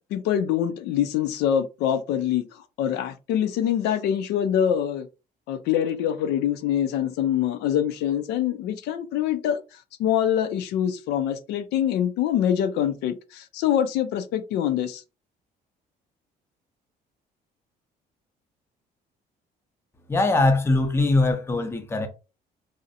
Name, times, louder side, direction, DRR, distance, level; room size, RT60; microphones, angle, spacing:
voice 1, 0.1-5.1 5.5-9.6 10.0-15.0, left 10 dB, 80° left, 0.4 m, -24 dB
voice 2, 20.1-22.1, left 2 dB, 15° left, 0.5 m, -21 dB
2.5 x 2.0 x 2.7 m
cardioid pair, 110°, 17 cm